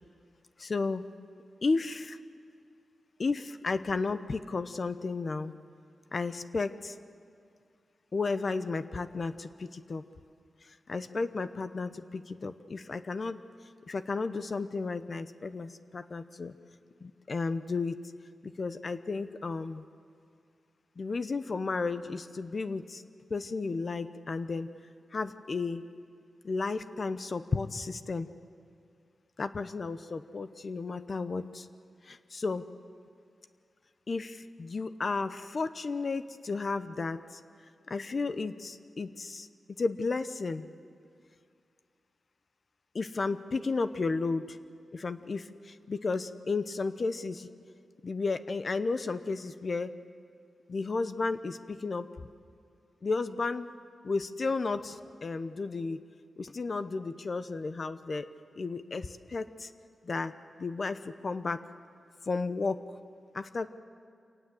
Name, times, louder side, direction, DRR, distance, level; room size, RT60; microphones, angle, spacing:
voice 1, 0.6-1.1 1.6-2.2 3.2-5.5 6.1-6.9 8.1-10.0 10.6-13.4 13.9-16.5 17.0-18.0 18.6-19.8 21.0-23.0 23.3-24.7 25.1-25.8 26.4-28.3 29.4-31.7 32.0-32.6 34.1-37.4 37.9-39.5 39.8-40.7 42.9-44.6 44.9-47.5 48.0-49.9 50.7-52.1 53.0-53.7 54.0-56.0 56.4-58.3 58.6-59.7 60.0-60.3 60.6-61.6 62.3-62.8 63.3-63.7, left 4 dB, 50° left, 11 dB, 0.9 m, -33 dB
26.5 x 18.5 x 7.8 m, 2.3 s
cardioid pair, 65°, 0 cm